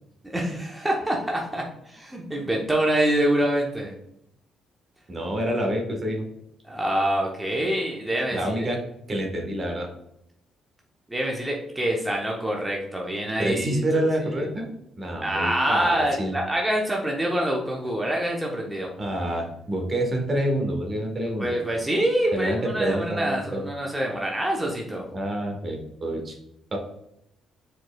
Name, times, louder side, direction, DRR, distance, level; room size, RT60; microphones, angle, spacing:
voice 1, 0.3-3.9 6.7-8.7 11.1-14.0 14.3-14.5 15.2-18.9 21.4-25.0, right 1 dB, 10° right, -1 dB, 0.8 m, -26 dB
voice 2, 5.1-6.2 8.3-8.8 9.1-9.9 13.4-14.7 15.0-16.3 19.0-21.6 22.3-23.7 25.1-26.4 26.7-26.8, right 1 dB, 40° right, 3 dB, 1.3 m, -27 dB
4.8 x 4.1 x 2.3 m, 0.78 s
supercardioid pair, 65°, 0 cm